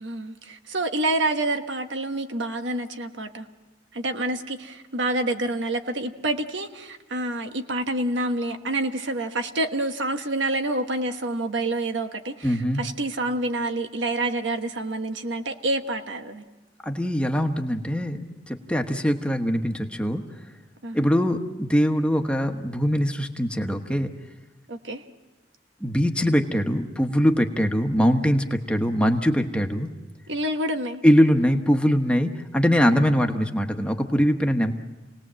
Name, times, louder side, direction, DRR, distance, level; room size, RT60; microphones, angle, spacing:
voice 1, 0.0-3.5 3.9-16.4 20.8-21.1 24.7-25.0 30.3-31.0, right 2 dB, 85° right, 6 dB, 1.4 m, -28 dB
voice 2, 12.4-12.8 16.8-20.2 20.9-24.1 25.8-29.9 31.0-34.7, equal, 5° left, 4 dB, 1.2 m, -22 dB
29.0 x 19.0 x 7.6 m, 1.2 s
head